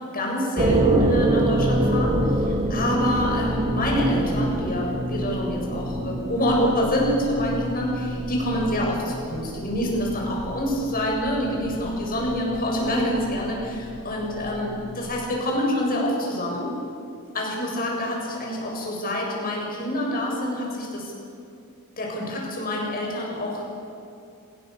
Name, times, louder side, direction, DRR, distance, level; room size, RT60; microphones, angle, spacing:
voice 1, 0.1-16.7 17.3-21.1 22.0-23.7, equal, 40° left, -1 dB, 7.6 m, -26 dB
sound 1, 0.6-15.4, right 1 dB, 25° right, 2.2 m, -27 dB
26.5 x 21.5 x 7.0 m, 2.7 s
head